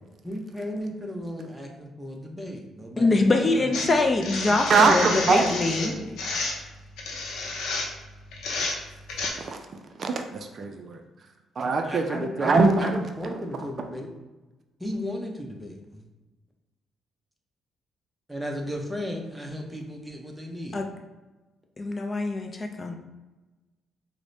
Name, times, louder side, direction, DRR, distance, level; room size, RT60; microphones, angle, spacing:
voice 1, 0.2-3.9 4.7-6.1 11.8-14.1 14.8-16.0 18.3-20.8, equal, 5° right, 0 dB, 0.7 m, -34 dB
voice 2, 3.0-5.9 20.7-20.9 21.8-22.9, left 3 dB, 30° left, 4 dB, 0.4 m, -24 dB
sound 1, 3.7-9.3, left 3 dB, 85° left, 0.6 m, -31 dB
voice 3, 4.5-5.5 9.3-11.0 11.6-13.0 13.2-13.3, right 4 dB, 50° right, 4 dB, 0.3 m, -23 dB
4.7 x 2.1 x 2.6 m, 1.1 s
cardioid pair, 90°, 0 cm